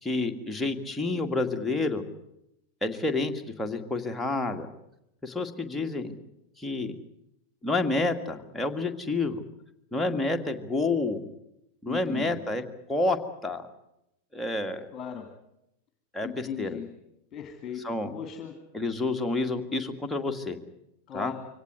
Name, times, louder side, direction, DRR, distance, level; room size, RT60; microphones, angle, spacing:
voice 1, 0.0-2.0 2.8-4.7 5.2-6.1 6.6-7.0 7.6-9.4 9.9-11.2 11.8-12.6 12.9-13.7 14.3-14.9 16.1-16.8 17.8-18.1 18.7-20.6 21.1-21.3, left 2 dB, 5° left, 3 dB, 2.0 m, -29 dB
voice 2, 11.9-12.5 14.9-15.3 16.2-16.9 17.3-17.9 18.1-18.5 21.1-21.3, left 9 dB, 30° left, 5 dB, 2.5 m, -37 dB
24.5 x 17.5 x 9.6 m, 0.85 s
figure-of-eight pair, 90°, 0 cm